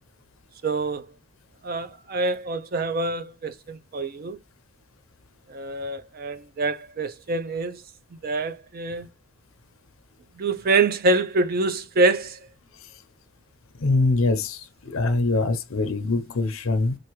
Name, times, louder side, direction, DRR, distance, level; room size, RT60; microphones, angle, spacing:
voice 1, 0.6-1.1 1.6-4.4 5.5-7.8 8.2-9.1 10.4-12.4, right 3 dB, 45° right, 0.5 m, -25 dB
voice 2, 13.8-17.0, left 3 dB, 75° left, 0.7 m, -23 dB
4.5 x 2.5 x 3.1 m
head